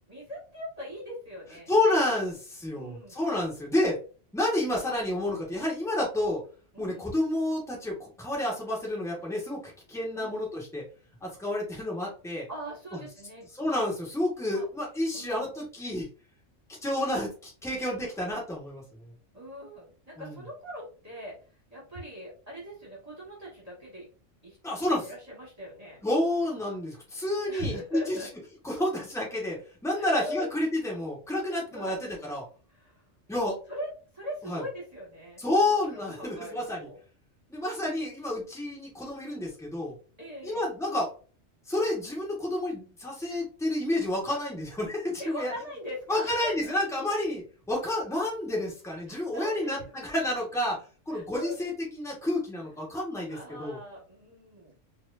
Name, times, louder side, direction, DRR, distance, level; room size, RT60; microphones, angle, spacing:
voice 1, 0.1-1.7 2.7-3.2 6.7-7.0 10.1-10.4 12.5-13.5 14.5-14.7 15.1-15.5 19.3-21.3 21.7-24.1 24.4-24.6 25.0-26.0 27.5-28.3 29.9-30.5 31.5-32.0 32.7-32.9 33.7-37.0 40.2-40.6 45.2-46.7 49.1-49.8 51.1-51.7 53.3-54.7, equal, 30° right, -5 dB, 1.6 m, -41 dB
voice 2, 1.7-4.0 4.3-6.4 6.8-10.8 11.2-12.5 12.9-13.0 13.5-16.1 16.8-19.1 20.2-20.4 24.6-25.1 26.0-28.3 28.6-32.4 33.3-33.6 34.5-34.6 35.4-36.9 37.5-39.9 40.4-41.1 41.7-45.5 46.1-50.8 51.1-53.8, left 1 dB, ahead, -3 dB, 1.3 m, -30 dB
4.6 x 2.6 x 2.5 m, 0.38 s
omnidirectional pair, 1.3 m